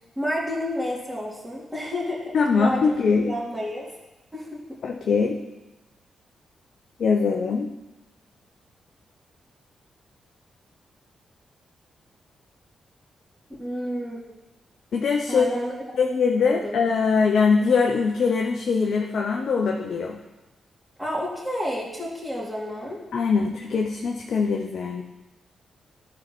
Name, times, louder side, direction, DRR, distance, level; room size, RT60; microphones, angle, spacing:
voice 1, 0.2-3.0 3.2-3.9 4.3-4.6 13.6-14.2 15.3-16.0 16.4-16.8 21.0-23.0, equal, 5° right, -9 dB, 2.9 m, -30 dB
voice 2, 2.3-3.3 4.8-5.4 7.0-7.7 14.9-15.5 16.0-20.2 23.1-25.0, left 5 dB, 70° left, 1 dB, 0.7 m, -22 dB
12.0 x 4.5 x 4.4 m, 1.0 s
supercardioid pair, 50°, 0 cm